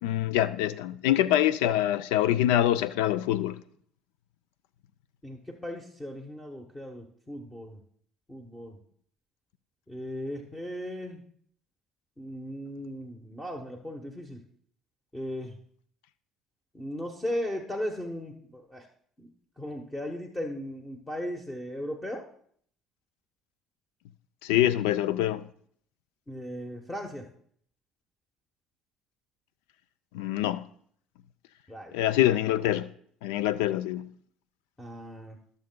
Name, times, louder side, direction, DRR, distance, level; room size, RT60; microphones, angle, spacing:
voice 1, 0.0-3.6 24.4-25.4 30.1-30.7 31.9-32.9 33.2-34.1, left 13 dB, 90° left, 0.3 m, -25 dB
voice 2, 5.2-7.8 8.3-8.8 9.9-11.2 12.2-14.4 15.1-15.5 16.7-18.9 19.2-19.3 19.6-22.3 26.3-27.3 31.7-32.0 34.8-35.4, equal, 10° left, 1.0 m, -37 dB
19.0 x 6.7 x 2.2 m
supercardioid pair, 105°, 0 cm